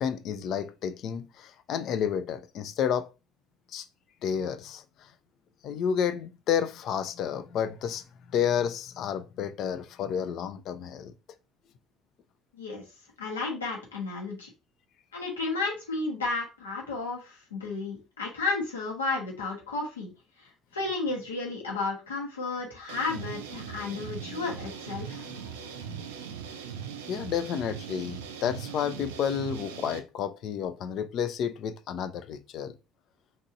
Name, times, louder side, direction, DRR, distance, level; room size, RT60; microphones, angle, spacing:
voice 1, 0.0-3.1 3.7-3.8 4.2-4.8 5.6-8.0 8.3-11.1 24.3-24.4 25.2-26.0 27.1-32.7, left 8 dB, 55° left, 0.4 m, -31 dB
voice 2, 13.2-14.5 15.1-20.1 20.7-25.2, left 3 dB, 85° left, 1.0 m, -32 dB
sound 1, 22.9-30.0, right 7 dB, 75° right, 0.4 m, -40 dB
2.9 x 2.7 x 2.5 m
figure-of-eight pair, 60°, 0 cm